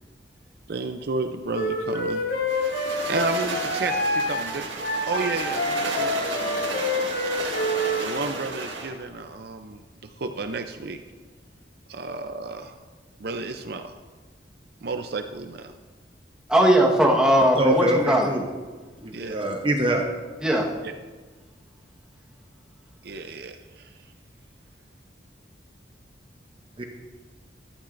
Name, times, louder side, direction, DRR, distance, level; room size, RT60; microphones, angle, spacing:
voice 1, 0.7-2.2 3.1-4.8 5.1-6.8 7.2-7.3 8.0-11.0 11.9-12.8 13.2-13.9 14.8-15.7 19.1-19.4 20.8-20.9 23.0-24.1, right 3 dB, 55° right, 6 dB, 0.5 m, -32 dB
Wind instrument woodwind instrument, 1.5-8.0, left 1 dB, 65° left, 3.2 m, -27 dB
sound 1, 2.5-9.0, right 3 dB, 90° right, 1.6 m, -33 dB
voice 2, 16.5-18.3 20.4-20.7, right 1 dB, 5° right, -2 dB, 1.3 m, -19 dB
voice 3, 17.6-18.5 19.0-20.0 26.8-26.9, right 1 dB, 30° right, 2 dB, 0.8 m, -24 dB
14.0 x 12.0 x 2.6 m, 1.4 s
head